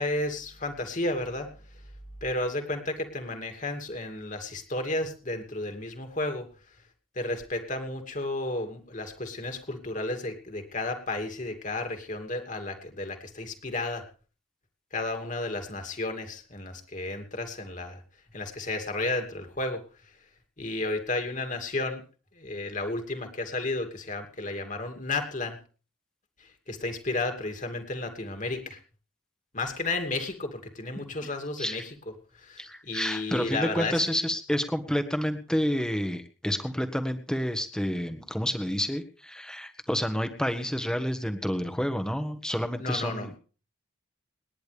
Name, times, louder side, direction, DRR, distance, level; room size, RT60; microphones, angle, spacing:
voice 1, 0.0-1.5 2.2-6.5 7.1-14.1 14.9-18.0 18.3-19.8 20.6-22.0 22.3-25.6 26.4-28.8 29.5-31.9 32.3-34.0 42.8-43.3, left 2 dB, 40° left, 5 dB, 2.6 m, -32 dB
voice 2, 32.6-43.3, equal, 5° left, 7 dB, 1.5 m, -29 dB
27.5 x 10.5 x 3.4 m, 0.39 s
head